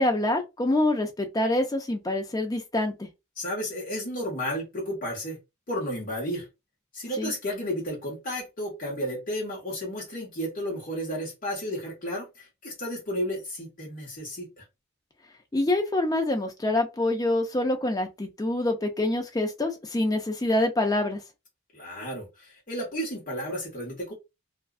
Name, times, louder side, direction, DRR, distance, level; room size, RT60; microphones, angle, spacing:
voice 1, 0.0-3.1 7.2-7.3 15.5-21.2, left 1 dB, 15° left, 0.4 m, -26 dB
voice 2, 3.4-5.4 5.7-6.5 6.9-14.6 21.7-24.1, equal, 40° left, 1.2 m, -33 dB
2.4 x 2.2 x 2.4 m
head